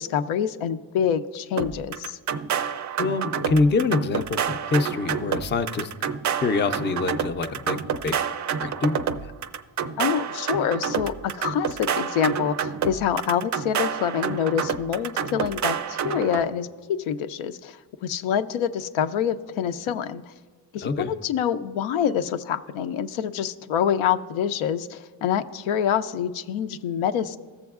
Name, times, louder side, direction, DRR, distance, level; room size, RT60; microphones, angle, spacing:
voice 1, 0.0-2.2 10.0-20.2 20.7-27.4, left 8 dB, 85° left, 10 dB, 0.5 m, -26 dB
sound 1, 1.6-16.4, right 7 dB, 40° right, 0.4 m, -28 dB
voice 2, 3.0-5.9 6.4-8.2 8.6-9.3 20.8-21.1, left 3 dB, 25° left, 9 dB, 0.4 m, -25 dB
15.0 x 6.9 x 2.4 m, 1.4 s
cardioid pair, 85°, 47 cm